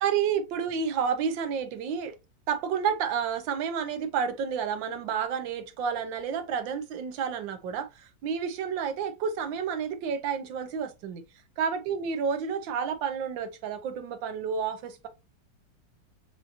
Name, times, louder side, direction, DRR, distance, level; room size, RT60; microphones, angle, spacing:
voice 1, 0.0-2.2 2.5-11.2 11.6-15.1, right 7 dB, 85° right, 1.5 m, -30 dB
6.6 x 2.8 x 2.5 m
omnidirectional pair, 2.0 m